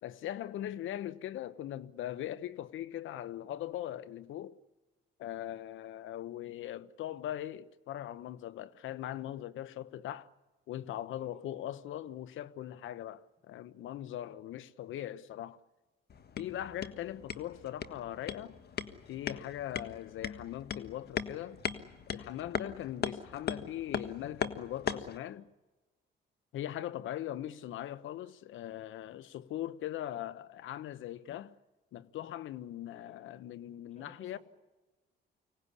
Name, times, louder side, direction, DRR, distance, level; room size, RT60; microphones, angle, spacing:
voice 1, 0.0-4.6 5.2-10.3 10.7-15.6 16.4-18.6 19.1-21.6 22.1-25.5 26.5-31.5 31.9-34.4, left 12 dB, 80° left, 1.0 m, -40 dB
voice 2, 11.1-11.8 14.2-14.4 27.2-27.4 32.9-33.3 34.0-34.4, left 3 dB, 35° left, 7.2 m, -58 dB
sound 1, 16.1-25.2, left 7 dB, 55° left, 1.5 m, -39 dB
25.0 x 18.0 x 9.8 m
cardioid pair, 90°, 20 cm